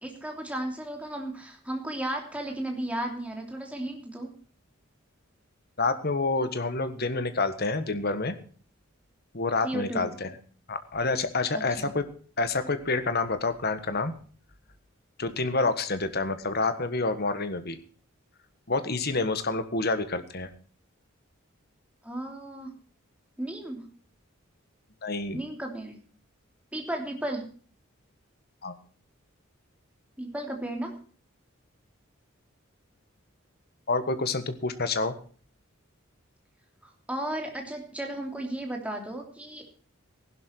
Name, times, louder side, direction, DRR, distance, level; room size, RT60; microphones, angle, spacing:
voice 1, 0.0-4.3 9.6-10.1 11.5-11.9 22.0-22.7 23.4-23.9 25.3-26.0 26.7-27.5 30.2-30.9 36.8-39.6, right 1 dB, 5° right, 2 dB, 3.0 m, -34 dB
voice 2, 5.8-8.3 9.3-10.3 10.7-12.0 12.4-14.1 15.2-17.8 18.7-20.5 25.0-25.4 28.6-28.7 33.9-35.1, left 3 dB, 50° left, 10 dB, 1.5 m, -28 dB
15.5 x 12.0 x 4.5 m, 0.42 s
head